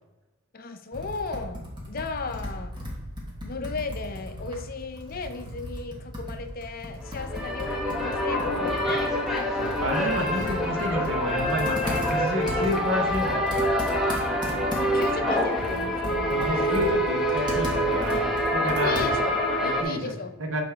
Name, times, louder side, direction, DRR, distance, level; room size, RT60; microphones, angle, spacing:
voice 1, 0.5-2.7 3.4-9.1 14.8-16.8 18.6-20.3, left 4 dB, 45° left, 7 dB, 0.5 m, -35 dB
Computer keyboard, 0.9-19.4, left 1 dB, 20° right, 1.2 m, -37 dB
sound 1, 7.0-19.8, equal, ahead, 0.8 m, -26 dB
voice 2, 9.6-13.5 16.3-19.0 19.6-20.1 20.4-20.6, equal, 65° right, 3 dB, 1.0 m, -30 dB
6.7 x 4.1 x 3.4 m, 1.0 s
head